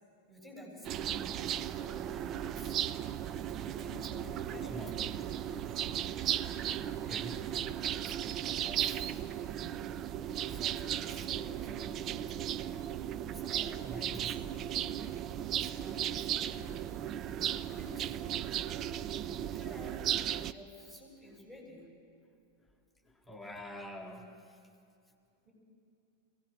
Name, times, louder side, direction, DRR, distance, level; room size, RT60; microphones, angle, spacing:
voice 1, 0.3-2.8 3.6-5.2 8.0-9.7 10.5-12.6 13.3-14.6 15.6-16.7 17.7-18.2 19.5-20.1 20.4-21.9 25.4-25.5, left 1 dB, 10° right, -3 dB, 7.6 m, -51 dB
sound 1, 0.8-20.5, right 10 dB, 30° right, 0.5 m, -36 dB
voice 2, 4.5-4.9 6.6-8.1 13.8-14.3 17.6-17.7 23.0-24.6, equal, 5° left, 1 dB, 1.8 m, -47 dB
23.5 x 18.0 x 6.6 m, 2.5 s
figure-of-eight pair, 90°, 0 cm